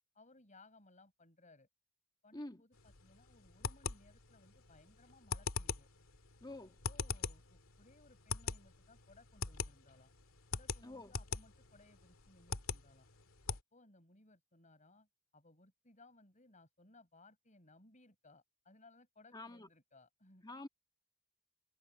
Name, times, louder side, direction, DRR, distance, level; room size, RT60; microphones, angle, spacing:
voice 1, 0.1-1.7 2.2-5.9 6.8-10.1 10.5-13.1 13.5-20.5, left 2 dB, 35° left, 6.1 m, -64 dB
sound 1, 2.7-13.6, left 5 dB, 80° left, 2.0 m, -43 dB
voice 2, 6.4-6.7 10.8-11.1 19.3-19.7 20.4-20.7, left 2 dB, 20° left, 1.6 m, -47 dB
head